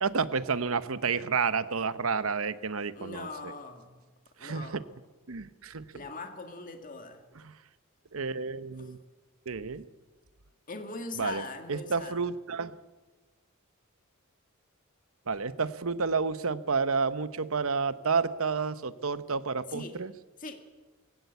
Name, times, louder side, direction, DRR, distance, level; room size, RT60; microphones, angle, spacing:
voice 1, 0.0-3.5 4.4-4.8 5.3-5.8 7.4-7.5 8.1-9.0 9.5-9.8 11.1-11.4 11.7-12.8 15.3-20.1, right 5 dB, 75° right, 14 dB, 0.9 m, -30 dB
voice 2, 2.9-4.0 4.4-4.9 5.9-7.3 8.8-8.9 10.7-12.2 19.7-20.0 20.4-20.6, left 3 dB, 40° left, 5 dB, 2.1 m, -41 dB
21.5 x 16.5 x 8.3 m, 1.2 s
head